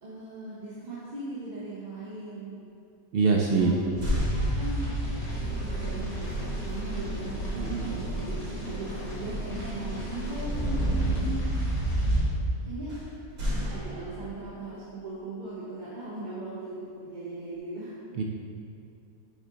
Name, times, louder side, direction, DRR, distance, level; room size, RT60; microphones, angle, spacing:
voice 1, 0.0-2.6 3.6-3.9 4.3-11.7 12.7-13.0 13.4-18.0, right 2 dB, 35° right, -9 dB, 1.0 m, -39 dB
voice 2, 3.1-3.7 7.5-8.1 18.2-18.3, right 4 dB, 70° right, -1 dB, 0.5 m, -25 dB
sound 1, 3.5-5.2 7.9-8.2 8.6-8.9 12.9-14.6, left 1 dB, 85° right, 2.0 m, -34 dB
sound 2, 4.0-12.2, right 1 dB, 25° left, 1.6 m, -30 dB
sound 3, 5.2-11.3, right 1 dB, 75° left, 1.2 m, -35 dB
6.3 x 5.1 x 3.9 m, 2.5 s
omnidirectional pair, 1.5 m